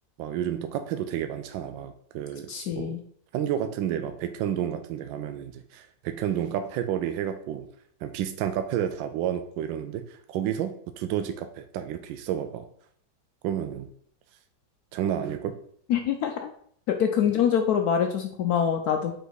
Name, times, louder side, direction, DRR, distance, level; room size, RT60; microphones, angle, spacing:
voice 1, 0.2-3.0 3.3-7.7 8.0-12.7 13.4-13.9 14.9-15.6, right 10 dB, 85° right, 8 dB, 1.3 m, -30 dB
voice 2, 2.5-3.0 15.9-16.5 16.9-19.2, left 8 dB, 70° left, 5 dB, 0.9 m, -25 dB
5.0 x 4.9 x 4.0 m, 0.63 s
omnidirectional pair, 2.0 m